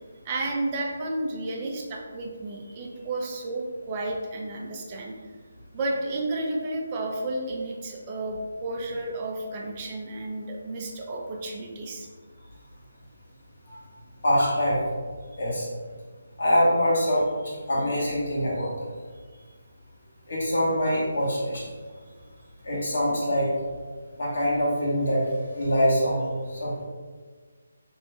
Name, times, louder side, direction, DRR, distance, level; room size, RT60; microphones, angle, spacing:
voice 1, 0.2-5.3 5.7-12.1, right 2 dB, 30° right, -1 dB, 0.6 m, -32 dB
voice 2, 14.2-14.8 15.4-15.7 16.4-18.7 20.3-21.6 22.6-23.5 24.2-25.2 25.5-26.2 26.5-26.8, equal, 60° left, -6 dB, 1.4 m, -24 dB
3.0 x 2.5 x 3.3 m, 1.5 s
figure-of-eight pair, 150°, 0 cm